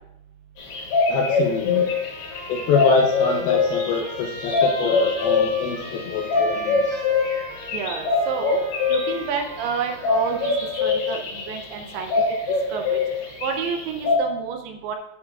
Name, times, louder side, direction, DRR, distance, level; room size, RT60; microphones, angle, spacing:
sound 1, 0.6-14.2, left 4 dB, 70° left, 3.6 m, -23 dB
voice 1, 1.1-1.8 2.5-7.0, left 5 dB, 85° left, 1 dB, 2.2 m, -24 dB
Trumpet, 1.7-10.9, right 1 dB, 15° right, 1.1 m, -38 dB
voice 2, 7.7-8.6 8.9-10.5 10.8-12.1 12.7-13.0 13.4-15.0, right 6 dB, 80° right, 4 dB, 2.4 m, -29 dB
9.9 x 7.1 x 2.3 m, 0.83 s
omnidirectional pair, 5.0 m